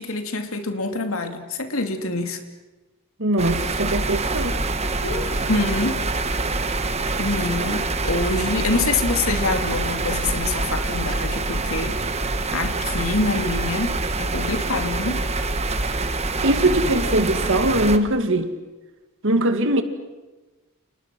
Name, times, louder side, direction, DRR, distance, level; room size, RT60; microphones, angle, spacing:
voice 1, 0.0-2.4 5.0-6.0 7.2-12.0 12.5-13.9 14.2-15.3, left 3 dB, 65° left, 2.7 m, -26 dB
voice 2, 3.2-4.6 16.4-18.5 19.2-19.8, right 1 dB, 60° right, 2.2 m, -21 dB
sound 1, 3.4-18.0, right 3 dB, 30° right, 1.4 m, -25 dB
30.0 x 29.5 x 6.2 m
head